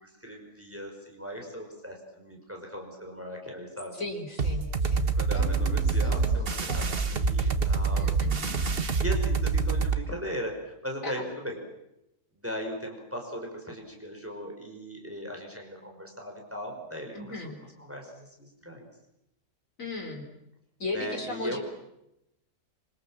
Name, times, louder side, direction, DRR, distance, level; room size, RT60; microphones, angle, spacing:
voice 1, 0.0-4.0 5.1-11.6 12.3-17.3 17.8-18.9 20.9-21.6, equal, 10° right, 1 dB, 5.2 m, -38 dB
voice 2, 4.0-6.8 7.1-7.5 7.9-8.6 11.0-11.1 17.1-17.6 19.8-20.2 20.8-21.6, left 2 dB, 55° left, 3 dB, 4.8 m, -37 dB
sound 1, 4.4-10.0, right 4 dB, 40° right, 1.4 m, -26 dB
26.0 x 25.0 x 7.5 m, 0.85 s
omnidirectional pair, 1.6 m